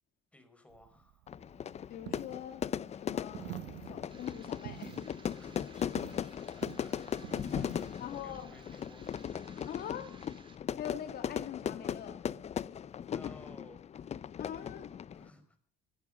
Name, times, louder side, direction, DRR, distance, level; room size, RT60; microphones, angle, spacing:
voice 1, 0.3-1.3 5.4-6.9 7.3-9.7 13.1-13.8 15.1-15.6, left 1 dB, 5° left, 7 dB, 5.0 m, -58 dB
Coin (dropping), 0.7-9.2, right 16 dB, 85° right, 0.8 m, -49 dB
Fire / Fireworks, 1.3-15.3, left 8 dB, 40° left, 0.7 m, -38 dB
voice 2, 1.9-2.6 2.9-3.6 3.8-5.3 8.0-8.5 9.7-10.1 10.8-12.2 14.4-14.9, left 10 dB, 65° left, 8 dB, 2.2 m, -43 dB
sound 1, 4.1-10.6, right 5 dB, 30° right, 2.9 m, -59 dB
20.5 x 12.5 x 5.1 m, 0.41 s
cardioid pair, 110°, 17 cm